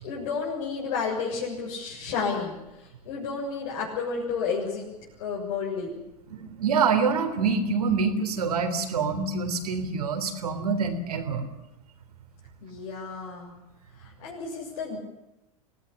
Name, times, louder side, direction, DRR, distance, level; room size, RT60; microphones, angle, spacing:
voice 1, 0.0-4.8 5.2-5.9 12.6-13.5 14.0-15.0, left 5 dB, 65° left, -5 dB, 7.2 m, -31 dB
voice 2, 6.3-11.4, right 5 dB, 75° right, 8 dB, 3.6 m, -26 dB
25.0 x 18.0 x 8.8 m, 0.97 s
hypercardioid pair, 90°, 20 cm